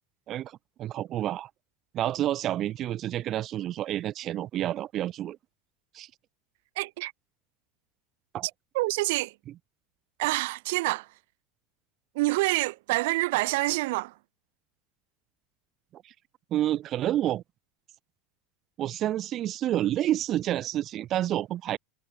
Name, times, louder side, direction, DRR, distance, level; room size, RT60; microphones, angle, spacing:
voice 1, 0.3-1.5 1.9-5.4 5.9-6.1 8.3-8.5 15.9-16.1 16.5-17.4 18.8-21.8, right 12 dB, 35° right, 1.1 m, -29 dB
voice 2, 6.8-7.1 8.7-9.3 10.2-11.1 12.1-14.1, right 21 dB, 70° right, 1.2 m, -27 dB
supercardioid pair, 160°, 0 cm